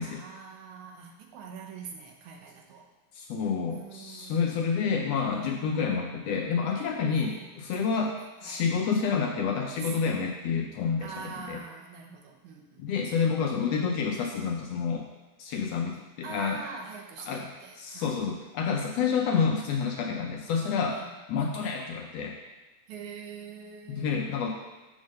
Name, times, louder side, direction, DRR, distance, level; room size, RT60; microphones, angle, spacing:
voice 1, 0.0-2.9 3.7-4.5 7.0-7.5 7.8-8.0 8.4-8.6 9.7-9.9 11.0-13.0 16.2-18.1 20.9-21.1 22.9-24.1, right 5 dB, 90° right, 2 dB, 2.3 m, -43 dB
voice 2, 3.1-11.6 12.8-15.1 15.4-16.6 17.3-21.0 21.3-22.4 23.9-24.5, left 6 dB, 75° left, 1 dB, 1.6 m, -29 dB
7.1 x 3.6 x 6.3 m, 1.2 s
omnidirectional pair, 3.3 m